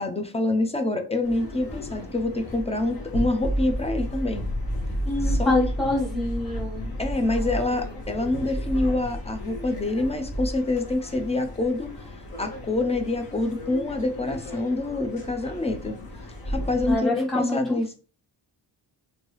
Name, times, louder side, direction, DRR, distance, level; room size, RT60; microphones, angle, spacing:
voice 1, 0.0-4.4 5.2-5.6 7.0-11.9 12.4-16.0 16.5-17.9, left 2 dB, 15° left, 6 dB, 0.3 m, -26 dB
sound 1, 1.2-17.0, equal, 50° left, 1.0 m, -32 dB
voice 2, 5.0-6.9 16.9-17.8, left 2 dB, ahead, -4 dB, 1.2 m, -26 dB
3.1 x 2.6 x 3.0 m, 0.37 s
wide cardioid pair, 130°, 46 cm